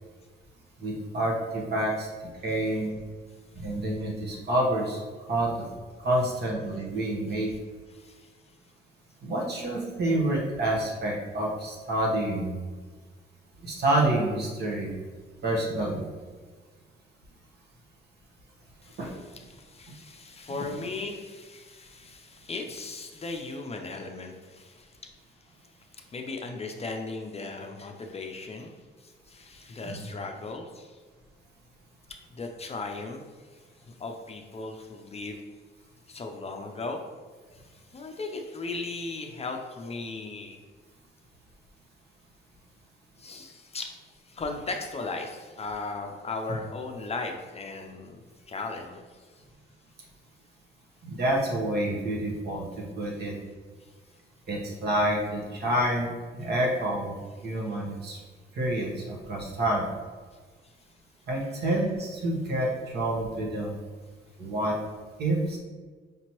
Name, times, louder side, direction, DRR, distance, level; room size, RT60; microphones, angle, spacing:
voice 1, 0.8-2.1 2.4-3.0 3.6-5.0 5.3-5.7 6.0-7.5 9.2-12.5 13.6-14.9 15.4-16.0 19.0-19.1 29.8-30.1 51.0-53.3 54.5-57.2 57.4-58.2 58.5-59.9 61.3-63.7 64.4-64.8 65.2-65.6, right 1 dB, 55° right, -2 dB, 1.2 m, -28 dB
voice 2, 7.9-8.3 18.8-25.1 25.9-28.7 29.0-31.0 32.3-33.2 33.9-35.4 36.1-37.0 37.5-40.6 43.2-44.0 44.2-48.2 48.5-49.4 53.8-53.9, left 3 dB, 30° left, 3 dB, 0.5 m, -37 dB
5.1 x 2.8 x 3.0 m, 1.5 s
cardioid pair, 90°, 20 cm